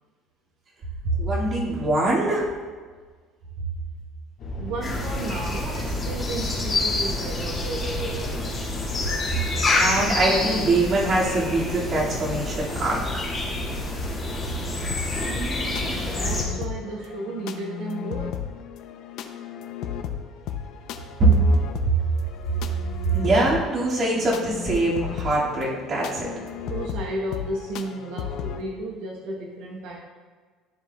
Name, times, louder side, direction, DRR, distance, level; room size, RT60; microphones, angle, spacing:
voice 1, 1.0-2.5 9.7-13.0 21.2-21.3 23.1-26.3, right 2 dB, 35° right, -6 dB, 2.1 m, -23 dB
sound 1, 4.4-10.8, equal, 40° left, 1.7 m, -37 dB
voice 2, 4.6-8.7 15.2-18.5 20.5-20.7 26.7-30.0, right 2 dB, 80° right, -2 dB, 1.1 m, -34 dB
sound 2, 4.8-16.4, left 2 dB, 25° left, 1.8 m, -28 dB
sound 3, 14.9-28.6, left 9 dB, 60° left, 0.6 m, -35 dB
13.5 x 4.8 x 2.3 m, 1.5 s
cardioid pair, 160°, 0 cm